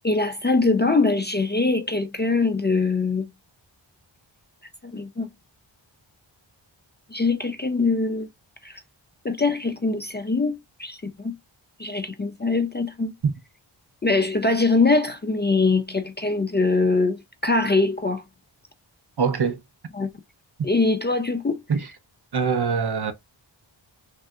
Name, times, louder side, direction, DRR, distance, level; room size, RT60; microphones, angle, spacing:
voice 1, 0.0-3.3 4.8-5.3 7.1-8.3 8.6-8.8 9.2-11.3 11.8-13.1 14.0-18.2 19.9-20.1 20.6-21.6, left 3 dB, 25° left, 0.4 m, -23 dB
voice 2, 19.2-19.6 21.7-21.9 22.3-23.1, right 5 dB, 55° right, 0.7 m, -23 dB
3.4 x 2.7 x 2.2 m
wide cardioid pair, 55°, 47 cm